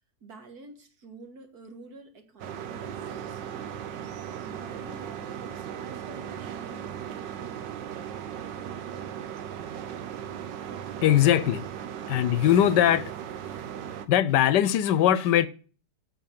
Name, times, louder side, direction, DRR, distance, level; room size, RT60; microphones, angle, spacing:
voice 1, 0.2-3.9 4.4-7.2, right 2 dB, 60° right, 2.1 m, -49 dB
sound 1, 2.4-14.1, right 9 dB, 85° right, 1.6 m, -37 dB
voice 2, 11.0-11.7 12.1-13.1 14.1-15.5, left 11 dB, 75° left, 1.3 m, -21 dB
8.2 x 7.0 x 8.3 m
omnidirectional pair, 1.9 m